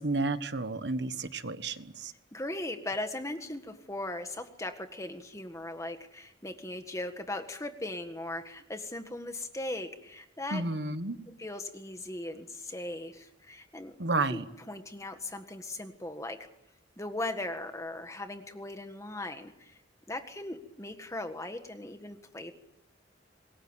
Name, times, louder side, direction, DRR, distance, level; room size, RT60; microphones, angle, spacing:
voice 1, 0.0-2.1 10.5-11.2 14.0-14.5, right 3 dB, 65° right, 11 dB, 1.5 m, -31 dB
voice 2, 2.3-10.7 11.4-14.4 14.7-16.5 17.0-19.8 20.1-22.6, left 1 dB, 15° left, 7 dB, 1.6 m, -38 dB
26.5 x 21.5 x 8.9 m, 0.84 s
head